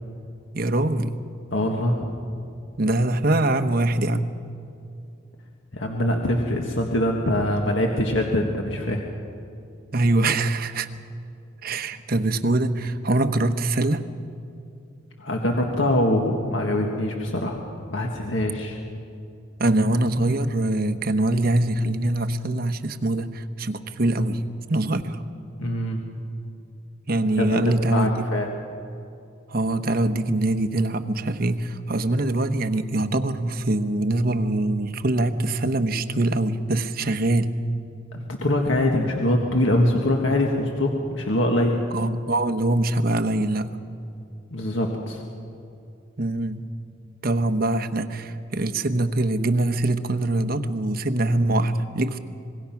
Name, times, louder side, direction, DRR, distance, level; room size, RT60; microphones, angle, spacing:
voice 1, 0.5-1.1 2.8-4.3 9.9-10.9 11.6-14.0 19.6-24.4 24.7-25.2 27.1-28.2 29.5-37.5 41.9-43.8 46.2-46.6 47.2-52.2, right 2 dB, 50° right, 9 dB, 1.0 m, -23 dB
voice 2, 1.5-2.1 5.7-9.0 15.2-17.6 17.9-18.8 25.6-26.0 27.4-28.5 38.1-41.8 44.5-45.2, left 1 dB, 80° left, 2 dB, 1.7 m, -23 dB
25.5 x 21.0 x 5.9 m, 2.6 s
head